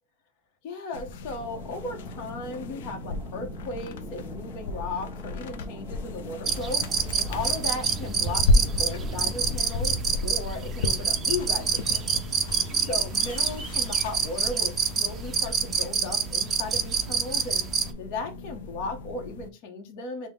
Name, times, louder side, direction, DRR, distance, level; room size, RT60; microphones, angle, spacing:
voice 1, 0.6-6.8 7.1-10.0 10.2-12.2 12.9-17.6 18.0-20.3, left 3 dB, 50° left, 3 dB, 0.8 m, -36 dB
sound 1, 0.9-19.5, left 2 dB, 80° left, 0.4 m, -33 dB
sound 2, 1.3-9.5, equal, 5° left, 1.1 m, -44 dB
sound 3, 6.5-17.9, right 6 dB, 25° right, 0.4 m, -27 dB
5.0 x 2.0 x 3.5 m, 0.29 s
supercardioid pair, 155°, 0 cm